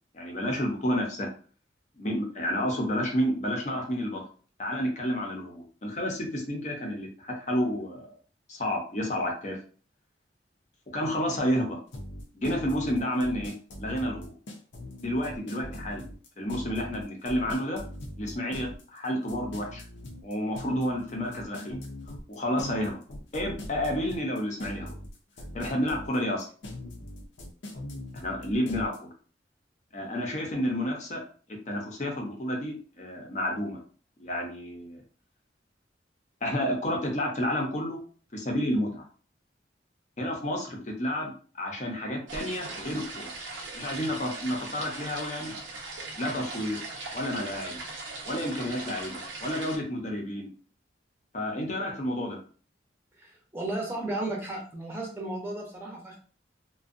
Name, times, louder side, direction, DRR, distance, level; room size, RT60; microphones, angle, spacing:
voice 1, 0.1-1.3 2.0-4.2 4.6-8.1 8.5-9.6 10.9-11.8 12.3-14.3 15.0-16.0 16.4-17.8 18.2-19.8 20.2-21.8 22.3-23.0 23.3-24.9 25.5-26.5 28.1-29.1 29.9-31.2 31.5-33.8 34.2-35.0 36.4-38.0 38.3-39.1 40.2-43.3 43.7-45.6 46.2-46.8 47.1-47.8 48.2-50.5 51.3-52.4, equal, 40° left, 1 dB, 0.6 m, -30 dB
sound 1, 11.9-29.0, left 1 dB, 85° left, 0.6 m, -41 dB
sound 2, 42.3-49.8, right 3 dB, 85° right, 0.7 m, -39 dB
voice 2, 53.2-56.2, right 2 dB, 15° right, -2 dB, 0.6 m, -34 dB
2.5 x 2.2 x 2.5 m, 0.41 s
head